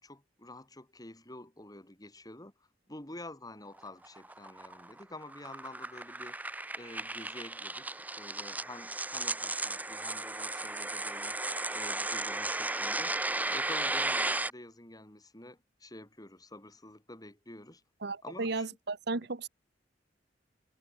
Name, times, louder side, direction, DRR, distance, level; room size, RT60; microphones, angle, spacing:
voice 1, 0.0-2.5 2.9-6.4 6.7-11.4 11.7-13.1 13.5-17.8 18.2-18.8, left 1 dB, 20° left, 7.0 m, -48 dB
sound 1, 3.8-14.5, right 2 dB, 10° right, 0.9 m, -35 dB
voice 2, 18.0-19.5, right 3 dB, 65° right, 1.2 m, -34 dB
head